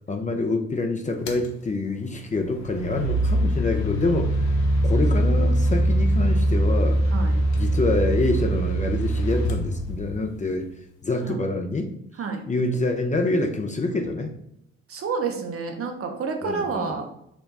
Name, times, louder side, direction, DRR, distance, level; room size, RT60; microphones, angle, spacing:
voice 1, 0.1-4.5 4.8-7.0 7.6-10.7 11.0-11.9 12.5-14.3 16.4-16.9, left 2 dB, 25° left, 4 dB, 0.6 m, -26 dB
sound 1, 1.3-1.5 2.4-10.4, right 1 dB, 85° left, 0.6 m, -22 dB
voice 2, 14.9-17.2, right 5 dB, 45° right, 4 dB, 1.0 m, -29 dB
4.4 x 2.2 x 4.1 m, 0.76 s
hypercardioid pair, 50°, 32 cm